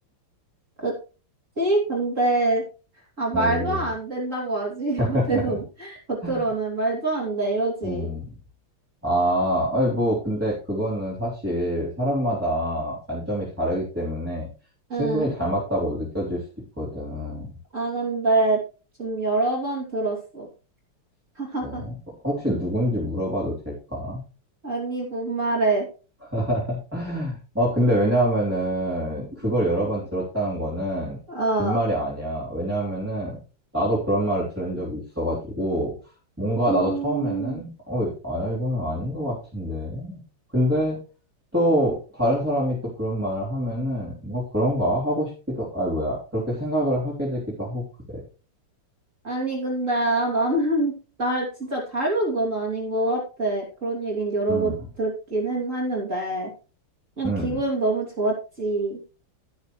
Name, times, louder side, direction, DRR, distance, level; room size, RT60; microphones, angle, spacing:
voice 1, 1.6-2.6 3.2-8.1 14.9-15.3 17.7-18.6 19.0-20.5 21.4-21.8 24.6-25.9 31.3-31.8 36.7-37.6 49.2-56.5 57.2-59.0, right 2 dB, 35° right, -3 dB, 3.3 m, -25 dB
voice 2, 3.3-3.8 5.0-5.6 6.2-6.5 7.8-8.3 9.0-14.5 15.0-16.4 16.8-17.5 21.6-22.0 22.2-24.2 26.3-31.2 31.6-33.4 33.7-35.9 36.4-40.2 40.5-41.0 41.5-48.2 54.5-54.8 57.2-57.6, equal, 5° right, -6 dB, 3.3 m, -26 dB
17.0 x 6.5 x 3.2 m, 0.34 s
omnidirectional pair, 2.4 m